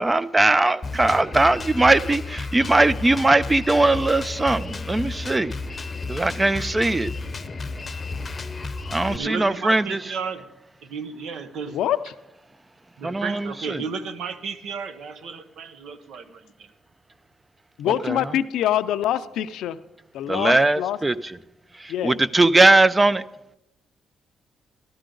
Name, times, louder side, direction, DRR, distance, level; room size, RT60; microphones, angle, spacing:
voice 1, 0.0-5.5 6.1-7.1 8.9-10.0 13.0-13.8 18.0-18.3 20.3-21.4 21.8-23.2, right 2 dB, 20° right, 0.4 m, -20 dB
Drum kit, 0.8-9.2, left 3 dB, 30° left, 0.7 m, -32 dB
voice 2, 9.1-10.5 10.8-11.8 13.0-16.7, right 5 dB, 75° right, 0.9 m, -33 dB
voice 3, 17.8-19.8 20.1-21.0 21.9-22.2, left 11 dB, 80° left, 0.5 m, -24 dB
13.0 x 12.5 x 3.8 m
cardioid pair, 90°, 0 cm